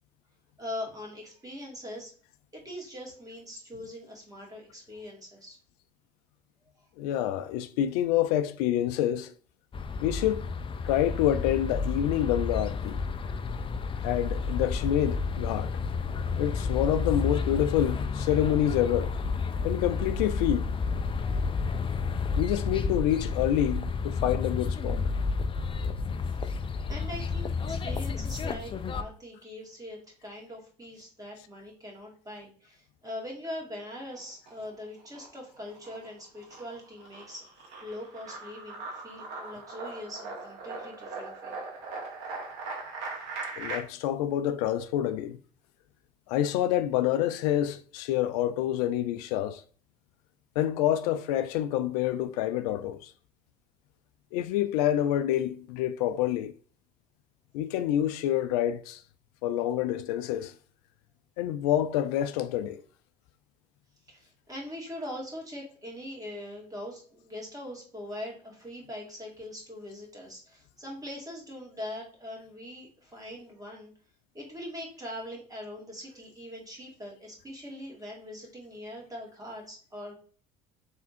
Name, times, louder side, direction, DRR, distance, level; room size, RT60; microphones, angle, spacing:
voice 1, 0.6-2.1 2.5-5.6 26.4-26.6 26.9-37.5 37.8-41.6 64.1-73.9 74.3-80.2, left 1 dB, 20° right, 2.4 m, -42 dB
voice 2, 7.0-9.3 10.0-10.5 10.8-13.0 14.0-15.7 16.4-19.1 19.6-20.7 22.4-25.0 43.6-45.4 46.3-49.6 50.6-53.1 54.3-56.5 57.5-59.0 59.4-60.5 61.4-62.8, left 11 dB, 80° left, 0.5 m, -27 dB
sound 1, 9.7-29.0, left 4 dB, 25° left, 0.5 m, -31 dB
sound 2, 33.8-34.7 35.0-43.8, right 3 dB, 70° right, 1.6 m, -40 dB
3.6 x 3.5 x 4.2 m
supercardioid pair, 80°, 20 cm